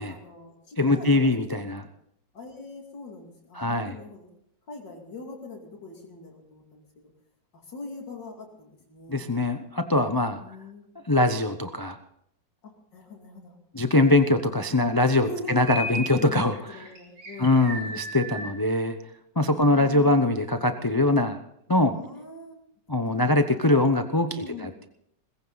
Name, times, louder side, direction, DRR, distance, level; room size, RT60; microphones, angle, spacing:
voice 1, 0.0-1.8 2.3-4.3 4.7-6.8 7.5-9.3 10.3-10.8 12.6-13.5 15.2-15.6 16.7-17.7 19.5-20.3 21.9-22.6 23.1-23.5 24.3-24.7, left 2 dB, 80° left, 0 dB, 3.3 m, -42 dB
voice 2, 0.8-1.8 3.5-4.0 9.1-10.4 11.1-12.0 13.7-16.8 17.4-19.0 19.4-21.4 21.7-21.9 22.9-24.9, left 2 dB, 35° left, 8 dB, 0.3 m, -22 dB
sound 1, 15.7-16.1 16.5-18.5, equal, 75° right, 4.3 m, -34 dB
20.5 x 15.5 x 4.0 m, 0.74 s
omnidirectional pair, 1.9 m